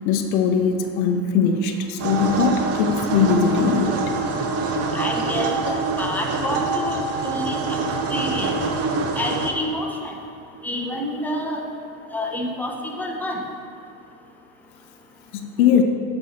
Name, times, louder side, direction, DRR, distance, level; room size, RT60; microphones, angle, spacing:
voice 1, 0.0-4.0 15.3-15.8, left 6 dB, 85° left, 5 dB, 0.8 m, -20 dB
sound 1, 2.0-9.5, right 3 dB, 35° right, 0.8 m, -25 dB
voice 2, 4.9-7.8 8.1-8.6 9.1-10.1 10.6-11.6 12.1-13.4, left 1 dB, 5° left, 0 dB, 0.8 m, -28 dB
9.6 x 5.5 x 4.3 m, 2.5 s
supercardioid pair, 120°, 41 cm